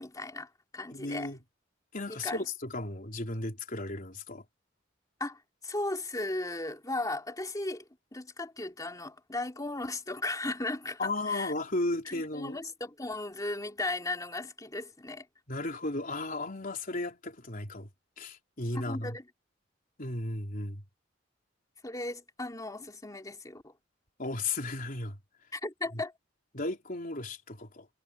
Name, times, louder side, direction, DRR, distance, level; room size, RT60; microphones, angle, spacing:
voice 1, 0.0-1.3 2.1-2.4 5.2-7.8 8.1-11.5 12.0-15.3 18.7-19.2 21.8-23.7 25.5-26.1, left 2 dB, 20° left, 2.9 m, -36 dB
voice 2, 0.9-1.4 1.9-4.4 11.0-12.6 15.5-17.9 18.2-19.2 20.0-20.8 24.2-25.2 25.9-26.0 26.5-27.9, left 2 dB, 45° left, 3.9 m, -35 dB
head